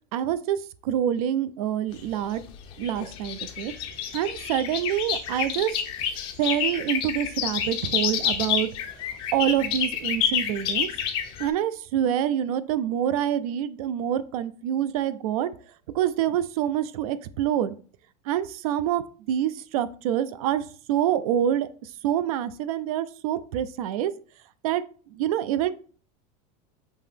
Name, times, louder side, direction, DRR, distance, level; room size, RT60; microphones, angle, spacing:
voice 1, 0.1-2.4 2.8-3.7 4.1-5.8 6.4-9.0 9.3-10.9 11.4-15.5 15.9-17.7 18.2-24.1 24.6-25.7, right 10 dB, 70° right, 14 dB, 0.4 m, -26 dB
sound 1, 1.9-11.5, left 8 dB, 25° left, 0.5 m, -29 dB
5.3 x 2.8 x 3.5 m, 0.41 s
supercardioid pair, 175°, 20 cm